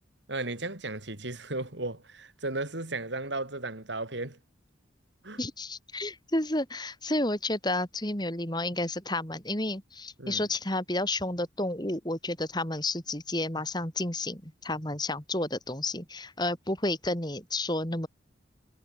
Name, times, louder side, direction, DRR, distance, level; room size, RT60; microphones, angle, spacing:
voice 1, 0.3-4.4 5.2-5.4 10.2-10.4, right 2 dB, 70° right, 3.8 m, -35 dB
voice 2, 5.4-18.1, left 2 dB, 20° left, 6.4 m, -31 dB
head